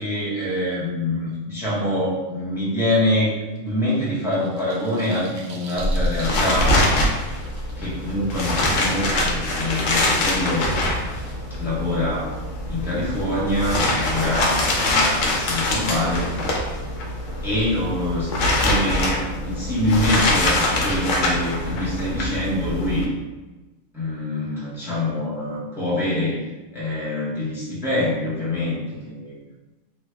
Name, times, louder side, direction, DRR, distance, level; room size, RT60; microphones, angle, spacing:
voice 1, 0.0-6.9 7.8-10.7 11.6-12.3 12.7-16.4 16.8-17.1 17.4-18.3 18.6-23.1 23.9-26.4 26.7-29.4, left 1 dB, ahead, -8 dB, 0.7 m, -25 dB
sound 1, 3.5-9.3, right 3 dB, 80° right, 1.0 m, -44 dB
sound 2, 5.8-23.0, left 1 dB, 70° left, 0.9 m, -23 dB
3.2 x 2.0 x 3.3 m, 1.1 s
omnidirectional pair, 1.4 m